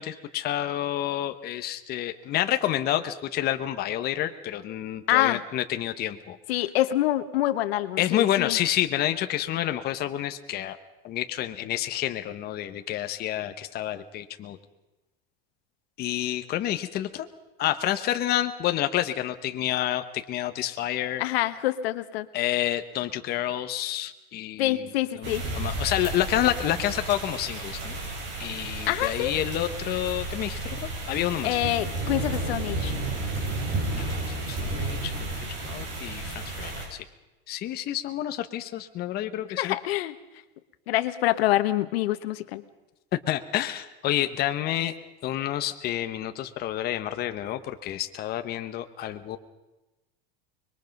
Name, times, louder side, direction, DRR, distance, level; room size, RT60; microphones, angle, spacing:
voice 1, 0.0-6.4 8.0-10.8 11.0-14.6 16.0-17.3 17.6-21.2 22.3-24.8 25.2-28.0 28.4-31.6 34.0-37.0 37.5-39.7 43.1-44.9 45.2-49.4, left 12 dB, 30° left, 8 dB, 1.0 m, -29 dB
voice 2, 5.1-5.4 6.5-8.6 21.2-22.3 24.6-25.4 28.9-29.3 31.4-32.9 39.5-40.1 40.9-42.6, left 15 dB, 85° left, 12 dB, 1.3 m, -26 dB
sound 1, 25.2-36.9, right 2 dB, 40° right, 7.1 m, -32 dB
25.0 x 22.5 x 5.3 m, 1.0 s
supercardioid pair, 155°, 30 cm